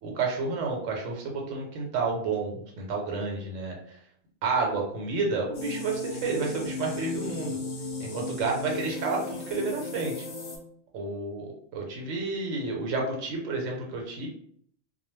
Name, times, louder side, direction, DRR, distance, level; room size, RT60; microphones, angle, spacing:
voice 1, 0.0-4.0 4.4-7.6 8.0-10.3 10.9-14.3, right 3 dB, 75° right, 0 dB, 1.0 m, -30 dB
sound 1, 5.5-10.6, left 3 dB, 75° left, 0.4 m, -35 dB
2.2 x 2.2 x 3.1 m, 0.63 s
omnidirectional pair, 1.3 m